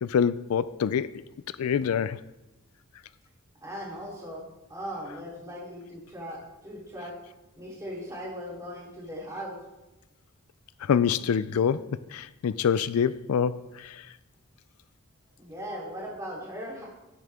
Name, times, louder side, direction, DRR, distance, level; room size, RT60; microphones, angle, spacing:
voice 1, 0.0-1.1 1.6-2.2 10.8-14.0, left 7 dB, 90° left, 0.4 m, -26 dB
voice 2, 3.6-7.2 7.6-9.6 15.4-16.8, equal, 15° right, 3.8 m, -38 dB
16.5 x 8.9 x 3.6 m
head